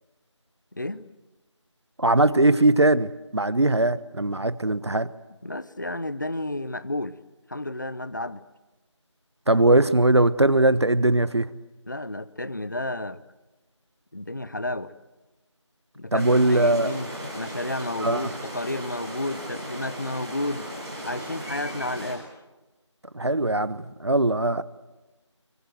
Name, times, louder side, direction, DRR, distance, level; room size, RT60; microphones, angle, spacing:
voice 1, 0.7-1.1 5.4-7.2 7.5-8.4 11.9-13.2 14.1-14.9 16.0-17.1 17.3-20.7 21.0-22.3, left 1 dB, 40° left, 0.8 m, -31 dB
voice 2, 2.0-5.1 9.5-11.5 16.1-17.0 18.0-18.3 23.1-24.6, right 2 dB, 60° right, 1.1 m, -20 dB
sound 1, 16.1-22.1, equal, 10° right, 4.5 m, -36 dB
25.0 x 23.5 x 7.9 m
figure-of-eight pair, 175°, 16 cm